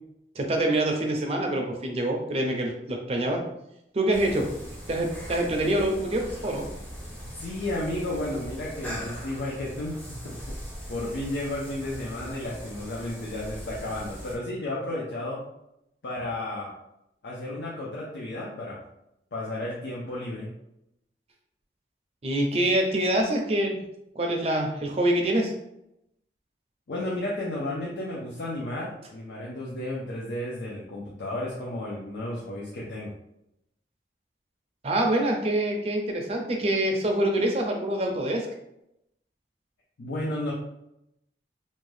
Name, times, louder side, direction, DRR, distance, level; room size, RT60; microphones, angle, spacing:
voice 1, 0.4-3.4 3.9-4.5 4.9-6.7 22.2-23.8 24.2-25.5 34.8-38.5, right 1 dB, 35° right, 2 dB, 0.4 m, -25 dB
sound 1, 4.1-14.3, equal, 10° left, 0.6 m, -40 dB
voice 2, 7.3-10.5 10.9-15.4 16.0-16.7 17.2-18.8 19.3-20.5 26.9-33.1 40.0-40.5, left 1 dB, 75° left, -5 dB, 0.6 m, -33 dB
2.6 x 2.2 x 3.2 m, 0.83 s
head